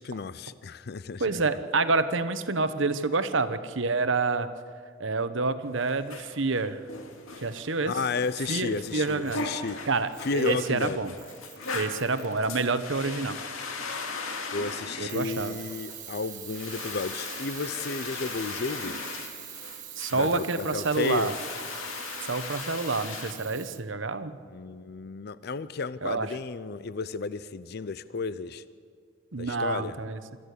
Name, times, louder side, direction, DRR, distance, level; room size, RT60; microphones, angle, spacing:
voice 1, 0.0-1.4 7.9-9.8 10.2-11.0 14.5-19.0 20.1-21.3 24.5-28.6 29.4-30.0, left 4 dB, 50° left, 15 dB, 0.5 m, -32 dB
voice 2, 1.2-4.5 5.0-6.8 7.4-7.9 8.5-9.4 9.9-11.1 11.7-13.4 15.0-15.6 20.0-21.3 22.2-24.3 26.0-26.3 29.3-30.2, right 3 dB, 65° right, 11 dB, 1.0 m, -28 dB
sound 1, 5.7-23.3, left 4 dB, 85° left, 2.2 m, -39 dB
Camera, 10.0-10.7 11.2-12.7 15.1-23.8, right 11 dB, 35° right, 1.6 m, -44 dB
26.0 x 13.5 x 8.3 m, 2.1 s
head